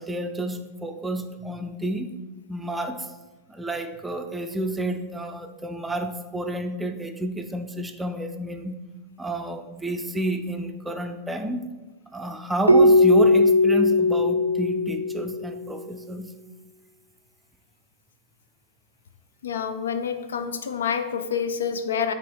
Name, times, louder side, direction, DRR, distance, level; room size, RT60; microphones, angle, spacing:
voice 1, 0.0-2.1 2.5-3.1 3.5-8.8 9.2-11.6 12.1-16.3, right 1 dB, 10° right, 6 dB, 0.5 m, -30 dB
Keyboard (musical), 12.7-15.5, left 2 dB, 85° right, 0.4 m, -18 dB
voice 2, 19.4-22.1, left 7 dB, 65° left, 10 dB, 0.4 m, -27 dB
6.0 x 3.5 x 4.7 m, 1.1 s
figure-of-eight pair, 90°, 0 cm